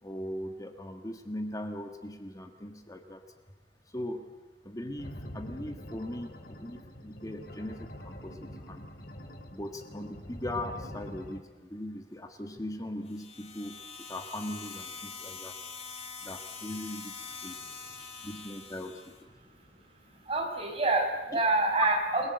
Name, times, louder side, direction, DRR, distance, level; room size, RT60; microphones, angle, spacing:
voice 1, 0.0-3.2 3.9-4.3 4.6-8.8 9.5-13.8 14.1-15.6 16.2-17.6 18.2-19.3 20.1-20.2, left 1 dB, 20° left, 5 dB, 1.5 m, -39 dB
sound 1, 5.0-11.4, equal, 60° left, 2.5 m, -45 dB
sound 2, 13.1-19.2, left 5 dB, 35° left, 2.6 m, -44 dB
voice 2, 19.9-22.3, right 2 dB, 35° right, 2 dB, 5.6 m, -27 dB
29.0 x 22.0 x 8.0 m, 1.3 s
head